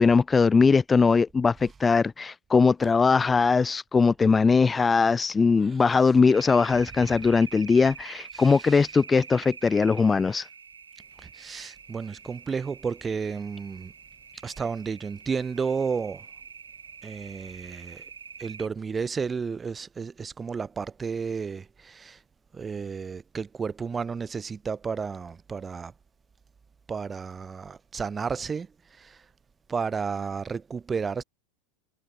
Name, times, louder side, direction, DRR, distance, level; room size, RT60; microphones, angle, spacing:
voice 1, 0.0-10.5, left 4 dB, 20° left, 0.5 m, -21 dB
sound 1, 6.3-18.7, right 6 dB, 85° right, 2.6 m, -45 dB
voice 2, 11.2-13.9 14.4-16.2 17.0-18.0 18.4-22.2 22.5-25.9 26.9-29.2 29.7-31.2, right 5 dB, 20° right, 1.1 m, -32 dB
hypercardioid pair, 90°, 0 cm